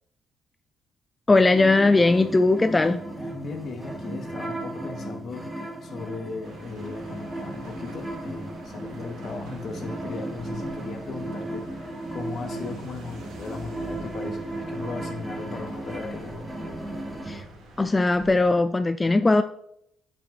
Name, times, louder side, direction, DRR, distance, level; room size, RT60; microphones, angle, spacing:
voice 1, 1.3-3.0 17.3-17.4 17.8-19.4, left 2 dB, 20° left, 10 dB, 0.3 m, -19 dB
sound 1, 1.5-17.4, right 1 dB, 10° right, 1.9 m, -35 dB
voice 2, 3.2-5.4 5.8-16.5, left 4 dB, 60° left, 5 dB, 1.2 m, -37 dB
sound 2, 6.4-18.5, right 2 dB, 90° right, 2.4 m, -47 dB
8.3 x 7.1 x 2.5 m, 0.73 s
cardioid pair, 85°, 0 cm